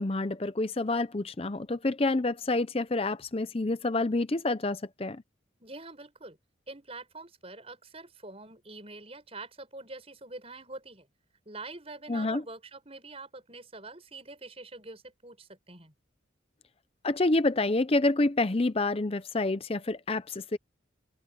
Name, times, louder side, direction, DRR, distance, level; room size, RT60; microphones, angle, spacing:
voice 1, 0.0-5.2 12.1-12.4 17.0-20.6, left 2 dB, 30° left, 0.6 m, -28 dB
voice 2, 5.6-6.4 6.7-11.1 11.4-15.9, right 2 dB, 30° right, 6.8 m, -45 dB
head